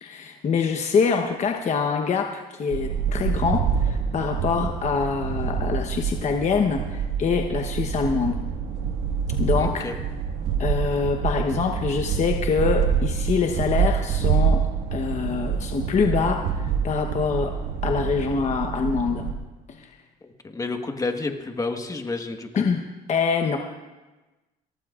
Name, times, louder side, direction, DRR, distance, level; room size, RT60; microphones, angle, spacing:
voice 1, 0.0-8.4 9.4-9.9 10.6-19.3 19.7-20.0 22.5-22.8 23.1-23.6, left 5 dB, 45° left, 3 dB, 1.1 m, -25 dB
sound 1, 2.7-19.3, right 7 dB, 90° right, 1.7 m, -26 dB
voice 2, 9.6-10.0 20.2-22.5, left 3 dB, 20° left, 5 dB, 1.4 m, -30 dB
23.5 x 17.5 x 2.5 m, 1.1 s
cardioid pair, 110°, 17 cm